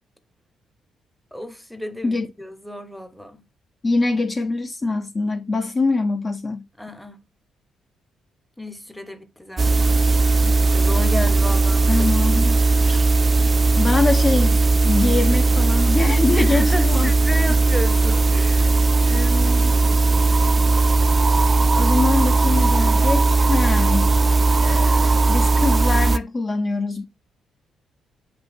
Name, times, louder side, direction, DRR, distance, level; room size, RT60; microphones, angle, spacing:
voice 1, 1.3-3.4 6.8-7.2 8.6-9.9 10.4-12.4 16.3-18.9, left 1 dB, 5° left, 0.7 m, -32 dB
voice 2, 3.8-6.6 11.9-13.1 13.7-17.1 19.1-19.7 21.7-24.1 24.6-27.0, left 3 dB, 30° left, 0.4 m, -24 dB
sound 1, 9.6-26.2, right 3 dB, 35° right, 0.3 m, -17 dB
7.7 x 2.8 x 2.4 m
cardioid pair, 90°, 0 cm